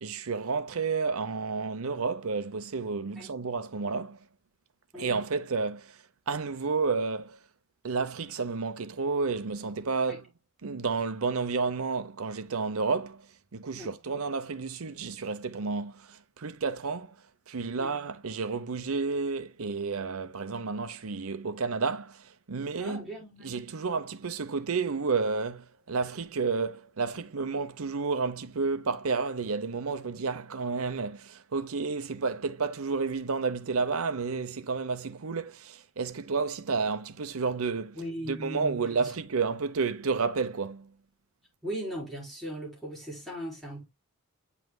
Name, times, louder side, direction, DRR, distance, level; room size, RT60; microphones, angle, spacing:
voice 1, 0.0-4.2 4.9-7.4 7.8-10.3 10.6-17.2 17.5-23.1 23.4-38.0 38.2-41.0, right 4 dB, 75° right, 0.8 m, -31 dB
voice 2, 22.8-23.5 37.9-39.1 41.6-43.9, right 1 dB, ahead, 4.4 m, -38 dB
9.2 x 5.7 x 2.3 m
head